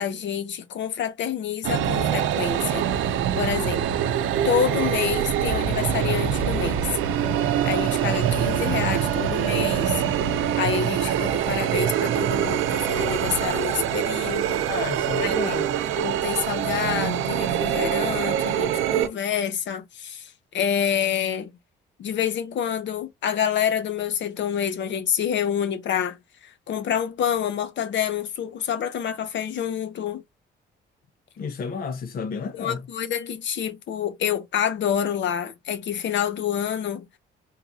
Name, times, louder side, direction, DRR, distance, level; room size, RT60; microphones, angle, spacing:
voice 1, 0.0-3.9 4.4-6.9 7.6-10.0 10.5-14.7 15.2-15.6 15.8-21.5 22.0-30.2 32.5-37.2, left 8 dB, 65° left, 0.8 m, -27 dB
sound 1, 1.6-19.1, right 9 dB, 90° right, 0.6 m, -24 dB
voice 2, 14.6-15.7 31.4-32.8, left 6 dB, 50° left, 0.6 m, -31 dB
3.8 x 2.3 x 2.7 m
cardioid pair, 90°, 20 cm